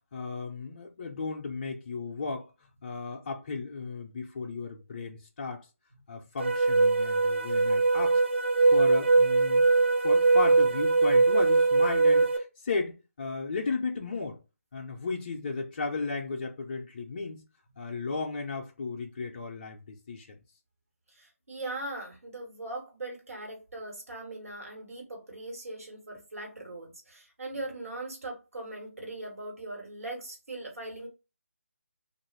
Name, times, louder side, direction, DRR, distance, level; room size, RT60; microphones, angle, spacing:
voice 1, 0.1-2.5 2.8-5.7 6.1-8.2 8.7-9.7 10.0-14.4 14.7-17.4 17.8-20.4, left 4 dB, 35° left, 0.4 m, -35 dB
sound 1, 6.4-12.4, right 3 dB, 55° right, 0.5 m, -22 dB
voice 2, 21.2-31.1, right 2 dB, 75° right, 1.2 m, -40 dB
2.5 x 2.3 x 3.1 m
figure-of-eight pair, 160°, 8 cm